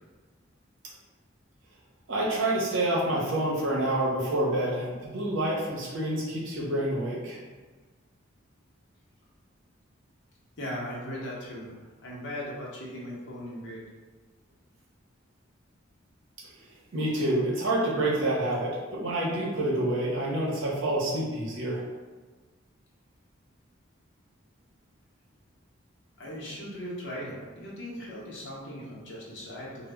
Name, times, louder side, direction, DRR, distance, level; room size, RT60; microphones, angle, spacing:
voice 1, 2.1-7.4 16.9-21.8, right 1 dB, 75° right, -5 dB, 0.7 m, -28 dB
voice 2, 10.6-13.8 26.2-29.9, equal, 65° left, -4 dB, 0.7 m, -38 dB
2.0 x 2.0 x 3.4 m, 1.4 s
head